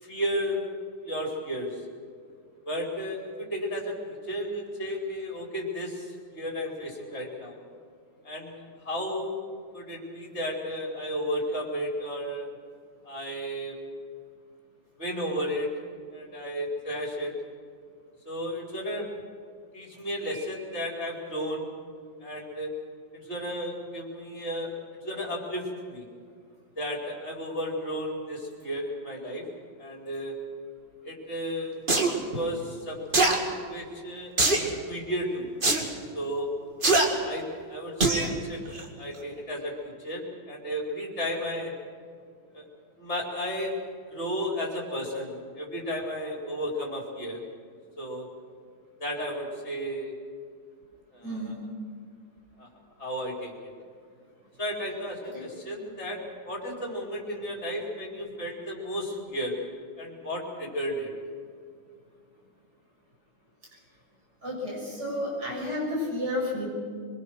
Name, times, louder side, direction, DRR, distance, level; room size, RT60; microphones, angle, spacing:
voice 1, 0.0-0.6 1.0-1.8 2.6-7.6 8.2-12.5 13.0-13.8 15.0-15.7 16.1-17.3 18.2-19.1 19.7-21.7 22.2-22.7 23.1-24.7 25.0-26.1 26.8-29.5 29.8-30.3 31.0-31.8 32.3-35.5 36.1-36.5 37.2-38.6 39.0-41.7 42.5-42.7 43.0-43.8 44.1-47.4 48.0-48.3 49.0-50.1 51.1-51.5 52.6-52.7 53.0-53.7 54.6-59.6 60.0-61.1, equal, 35° left, -1 dB, 4.9 m, -33 dB
sound 1, 31.9-32.1 33.1-33.4 34.4-34.7 35.6-35.8 36.8-37.1 38.0-38.3 38.7-38.8, right 2 dB, 25° right, 2.1 m, -21 dB
voice 2, 51.2-51.6 55.3-55.4 64.4-66.7, left 1 dB, 55° right, -3 dB, 7.6 m, -31 dB
24.0 x 22.5 x 6.4 m, 2.1 s
omnidirectional pair, 2.1 m